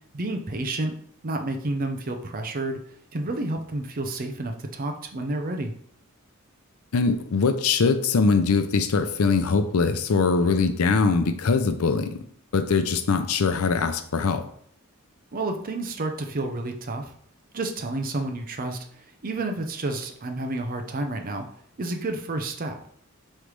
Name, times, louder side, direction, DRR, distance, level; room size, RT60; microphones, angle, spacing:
voice 1, 0.1-1.0 1.2-5.7 15.3-17.1 17.5-21.5 21.8-22.8, right 2 dB, 40° right, 4 dB, 0.6 m, -30 dB
voice 2, 6.9-12.2 12.5-14.4, left 4 dB, 85° left, 9 dB, 0.5 m, -22 dB
5.2 x 3.2 x 3.1 m, 0.62 s
head